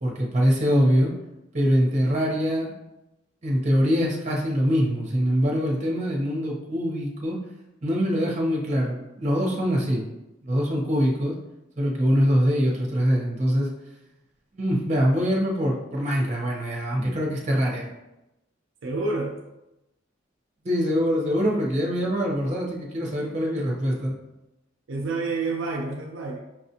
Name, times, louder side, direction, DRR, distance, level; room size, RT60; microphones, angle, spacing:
voice 1, 0.0-1.1 1.5-2.7 3.4-7.4 7.8-10.0 10.4-11.3 11.8-13.7 14.5-17.9 20.6-24.2, equal, 35° right, -2 dB, 1.0 m, -23 dB
voice 2, 18.8-19.4 24.9-26.4, right 3 dB, 75° right, 0 dB, 0.5 m, -28 dB
5.8 x 2.4 x 2.8 m, 0.95 s
head